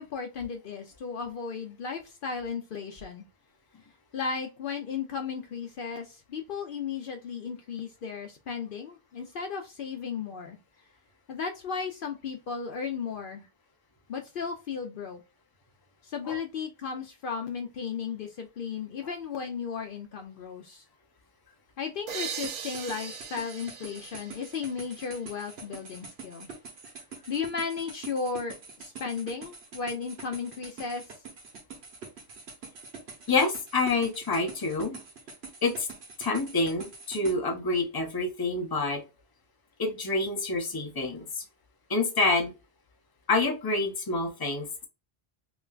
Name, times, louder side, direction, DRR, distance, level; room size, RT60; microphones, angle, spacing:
voice 1, 0.0-3.2 4.1-10.6 11.3-13.5 14.1-15.2 16.0-20.8 21.8-26.5 27.3-31.0, left 5 dB, 65° left, 4 dB, 0.7 m, -35 dB
sound 1, 22.1-25.6, right 7 dB, 55° right, 0.5 m, -40 dB
sound 2, 22.4-37.4, right 4 dB, 90° right, 1.3 m, -45 dB
voice 2, 33.3-35.0 35.6-35.9 36.2-39.0 39.8-41.3 41.9-42.5 43.3-44.7, left 3 dB, 25° left, 2 dB, 0.7 m, -27 dB
3.3 x 3.0 x 2.4 m, 0.28 s
omnidirectional pair, 1.0 m